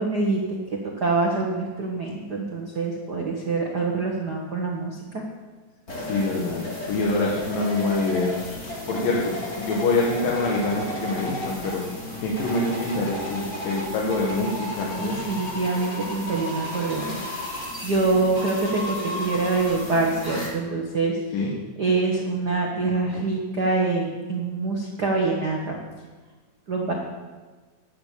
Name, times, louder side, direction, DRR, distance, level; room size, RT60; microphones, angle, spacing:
voice 1, 0.0-5.2 15.0-17.3 17.8-21.2 21.8-25.8 26.7-26.9, right 3 dB, 55° right, -1 dB, 1.1 m, -25 dB
sound 1, 5.9-20.5, left 1 dB, 25° left, 3.5 m, -33 dB
voice 2, 6.0-8.4 8.9-11.8 12.2-15.2 21.3-21.5, left 2 dB, 80° left, -3 dB, 3.2 m, -25 dB
12.5 x 7.0 x 8.5 m, 1.4 s
omnidirectional pair, 3.9 m